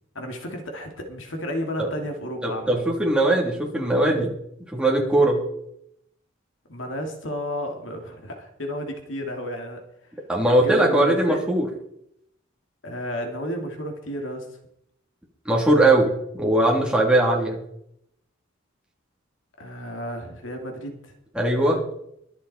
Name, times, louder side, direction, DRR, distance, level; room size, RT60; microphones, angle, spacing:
voice 1, 0.1-2.8 6.7-9.9 10.4-11.4 12.8-14.6 19.6-21.1, equal, 75° left, 3 dB, 2.6 m, -32 dB
voice 2, 2.4-4.3 4.7-5.4 10.3-11.7 15.4-17.6 21.3-21.8, right 1 dB, 5° right, -2 dB, 3.0 m, -20 dB
23.0 x 8.1 x 4.3 m, 0.75 s
head